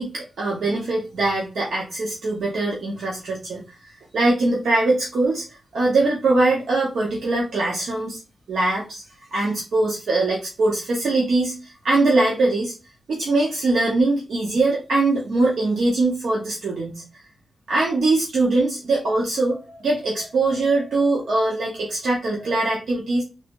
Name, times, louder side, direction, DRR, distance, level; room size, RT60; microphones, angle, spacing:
voice 1, 0.0-5.4 5.7-8.2 8.5-9.0 9.3-12.7 13.1-17.0 17.7-23.2, right 2 dB, 80° right, -3 dB, 1.0 m, -22 dB
3.3 x 3.2 x 3.0 m, 0.30 s
wide cardioid pair, 175°, 0 cm